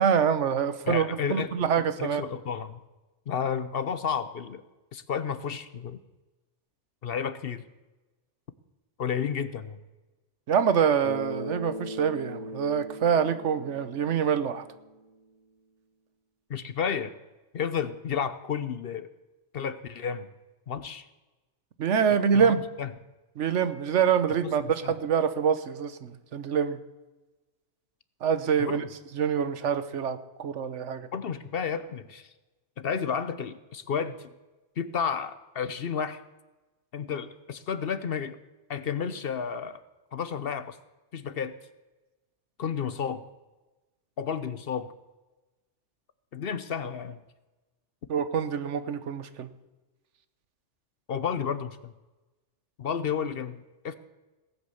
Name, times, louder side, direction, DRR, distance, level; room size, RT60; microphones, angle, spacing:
voice 1, 0.0-2.2 10.5-14.6 21.8-22.6 23.4-26.8 28.2-28.8 29.1-31.1 48.1-49.5, right 7 dB, 75° right, 13 dB, 1.2 m, -25 dB
voice 2, 0.9-1.5 2.0-2.8 3.3-4.6 4.9-6.0 7.0-7.6 9.0-9.8 16.5-17.1 17.5-19.1 19.5-20.3 20.7-21.0 22.3-22.9 24.6-24.9 28.6-28.8 31.1-32.3 32.8-34.3 34.8-36.2 36.9-38.4 38.7-39.8 40.1-40.8 41.1-41.6 42.6-43.2 44.2-44.9 46.3-47.2 51.1-51.9 52.8-53.9, left 7 dB, 55° left, 13 dB, 0.9 m, -31 dB
Bass guitar, 11.0-15.0, equal, 25° left, 1.4 m, -39 dB
18.0 x 8.3 x 7.1 m, 1.1 s
omnidirectional pair, 1.3 m